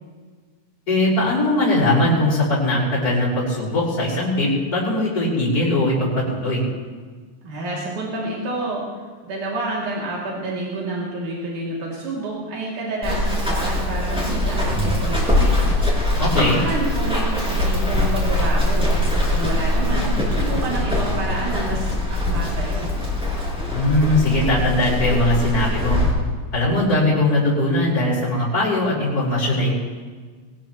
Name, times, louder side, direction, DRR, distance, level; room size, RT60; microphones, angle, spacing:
voice 1, 0.9-6.6 16.2-16.6 23.7-26.0 26.5-29.7, left 1 dB, 30° left, -8 dB, 5.2 m, -20 dB
voice 2, 7.4-8.8 9.2-15.5 16.3-21.9 22.2-22.9, right 2 dB, 85° right, -5 dB, 4.3 m, -28 dB
Run, 13.0-26.1, left 1 dB, ahead, 5.0 m, -22 dB
22.5 x 20.0 x 3.1 m, 1.5 s
omnidirectional pair, 3.5 m